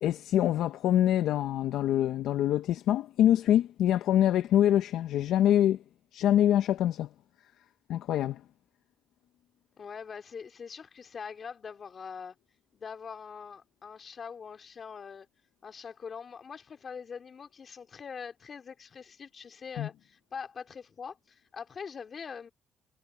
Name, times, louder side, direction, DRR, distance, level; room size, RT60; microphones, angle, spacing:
voice 1, 0.0-5.8 6.1-7.1 7.9-8.4 19.8-19.9, left 11 dB, 80° left, 0.7 m, -25 dB
voice 2, 9.8-12.4 12.7-15.3 15.6-22.5, left 6 dB, 50° left, 3.2 m, -43 dB
cardioid pair, 80°, 0 cm